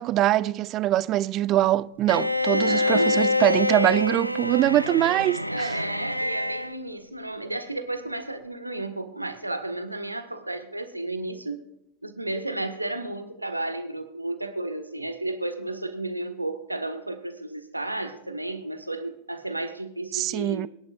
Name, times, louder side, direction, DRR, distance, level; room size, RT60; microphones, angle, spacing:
voice 1, 0.0-5.7 20.1-20.7, right 14 dB, 35° right, 0.4 m, -23 dB
Bowed string instrument, 2.1-6.7, left 2 dB, 90° left, 0.4 m, -26 dB
voice 2, 2.5-3.2 5.5-11.6 12.0-20.7, right 2 dB, 85° right, 1.3 m, -32 dB
23.5 x 10.5 x 2.4 m
figure-of-eight pair, 90°, 0 cm